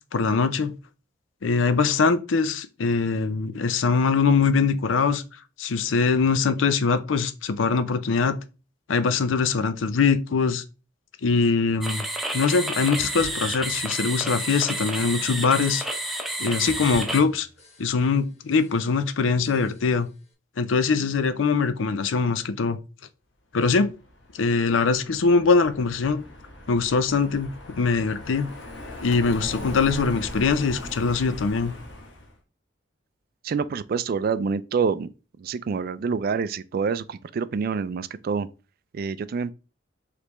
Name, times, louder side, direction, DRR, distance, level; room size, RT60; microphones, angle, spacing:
voice 1, 0.1-0.7 1.4-5.2 5.6-8.4 8.9-10.6 11.2-12.0 12.3-15.8 16.4-17.5 17.8-20.1 20.6-22.8 23.5-23.9 24.4-26.2 26.7-27.5 27.8-28.5 29.0-31.7, left 4 dB, 80° left, 0.5 m, -22 dB
sound 1, 11.8-17.2, right 1 dB, ahead, 0.7 m, -30 dB
sound 2, 13.0-14.5 14.8-15.3 15.7-16.4 16.6-18.2 18.5-19.0 19.4-20.1, equal, 35° left, 1.2 m, -47 dB
Car passing by, 23.8-32.3, left 1 dB, 65° left, 1.1 m, -39 dB
voice 2, 33.4-35.1 35.4-38.5 38.9-39.5, right 5 dB, 50° right, 0.3 m, -27 dB
5.0 x 3.3 x 3.0 m
head